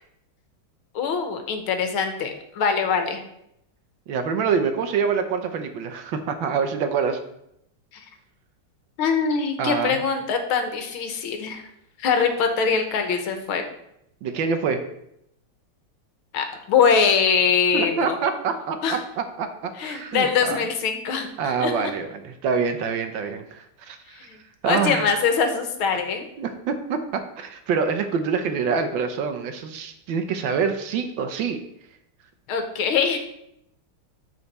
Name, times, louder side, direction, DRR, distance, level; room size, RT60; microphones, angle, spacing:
voice 1, 1.0-3.2 7.9-8.1 9.0-11.6 12.0-13.6 16.3-18.2 18.8-19.0 19.8-21.9 24.2-24.4 24.6-26.3 32.5-33.2, left 6 dB, 75° left, 6 dB, 1.9 m, -23 dB
voice 2, 4.1-7.2 9.6-10.0 14.2-14.8 17.7-20.6 21.4-24.3 24.6-25.2 26.4-31.6, right 5 dB, 70° right, 7 dB, 1.4 m, -26 dB
13.0 x 4.6 x 4.2 m, 0.78 s
omnidirectional pair, 2.3 m